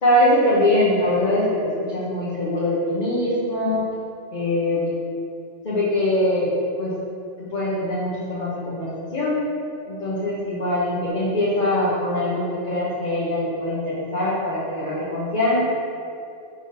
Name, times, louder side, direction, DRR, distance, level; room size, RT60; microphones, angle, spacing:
voice 1, 0.0-3.8 4.3-4.9 5.6-6.5 6.8-7.0 7.4-9.4 9.8-15.6, left 1 dB, 45° left, -10 dB, 1.3 m, -22 dB
6.0 x 5.3 x 4.1 m, 2.5 s
omnidirectional pair, 1.1 m